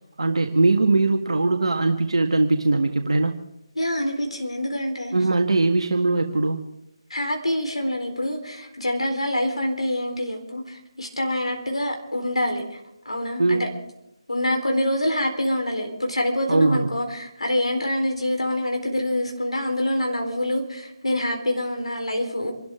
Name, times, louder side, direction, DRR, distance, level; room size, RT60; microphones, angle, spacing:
voice 1, 0.2-3.4 5.1-6.7 13.4-13.7 16.5-16.9, right 3 dB, 65° right, 4 dB, 1.6 m, -21 dB
voice 2, 3.8-5.1 7.1-12.8 13.1-13.7 14.3-22.5, left 1 dB, 80° left, 3 dB, 3.9 m, -26 dB
27.5 x 13.0 x 3.7 m, 0.84 s
figure-of-eight pair, 155°, 3 cm